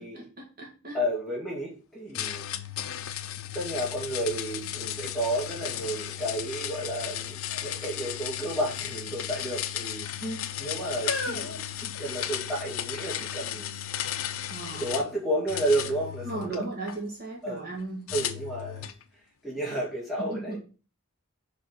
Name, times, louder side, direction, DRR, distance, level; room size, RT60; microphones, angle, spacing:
voice 1, 0.0-1.0 10.2-10.4 14.5-14.9 16.2-18.1 20.2-20.6, right 2 dB, 40° right, -1 dB, 2.0 m, -36 dB
voice 2, 0.9-2.5 3.5-10.3 10.6-13.8 14.7-16.7 17.4-17.7 18.1-18.8 19.4-20.6, right 1 dB, ahead, -5 dB, 2.1 m, -32 dB
sound 1, 2.1-15.1 15.5-17.0 18.1-19.0, left 11 dB, 70° left, 0.6 m, -35 dB
sound 2, 3.5-3.6 4.0-5.5 6.1-6.6 7.5-7.8 8.1-8.3 9.1-9.8 10.5-12.5 13.3-13.4, left 3 dB, 55° left, 1.9 m, -39 dB
5.1 x 4.9 x 6.1 m, 0.35 s
head